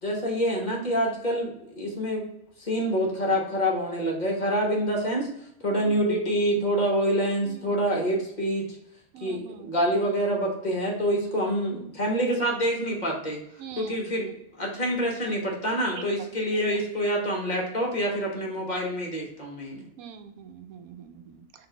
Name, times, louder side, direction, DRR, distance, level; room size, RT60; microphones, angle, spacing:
voice 1, 0.0-2.2 2.6-5.3 5.6-8.7 9.2-13.4 13.8-19.8, equal, 35° left, -2 dB, 1.0 m, -26 dB
voice 2, 7.4-7.8 9.1-9.7 13.6-14.0 15.9-16.3 20.0-21.7, right 7 dB, 85° right, 7 dB, 1.0 m, -43 dB
3.9 x 2.6 x 4.7 m, 0.77 s
omnidirectional pair, 1.5 m